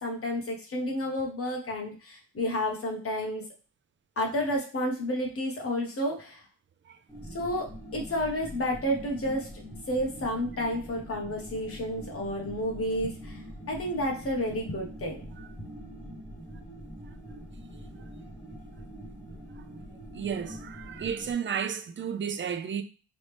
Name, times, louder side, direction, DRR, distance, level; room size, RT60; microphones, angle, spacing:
voice 1, 0.0-3.4 4.2-6.4 7.3-9.5 9.9-13.4 13.7-15.3, equal, 40° left, 1.3 m, -31 dB
sound 1, 7.1-21.3, equal, 10° left, 1.4 m, -44 dB
voice 2, 20.1-22.8, right 7 dB, 35° right, 0.4 m, -33 dB
4.0 x 3.2 x 3.3 m
wide cardioid pair, 145°, 36 cm